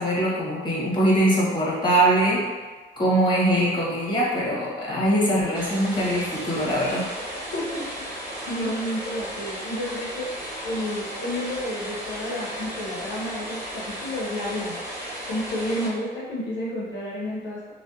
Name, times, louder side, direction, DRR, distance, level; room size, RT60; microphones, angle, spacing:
voice 1, 0.0-2.5 3.0-7.1, right 1 dB, 25° left, -5 dB, 0.8 m, -22 dB
sound 1, 5.5-15.9, equal, 10° right, 1.3 m, -35 dB
voice 2, 7.3-7.9 8.5-14.8 15.3-17.7, left 1 dB, 70° left, -5 dB, 0.6 m, -31 dB
2.7 x 2.1 x 2.3 m, 1.4 s
cardioid pair, 90°, 20 cm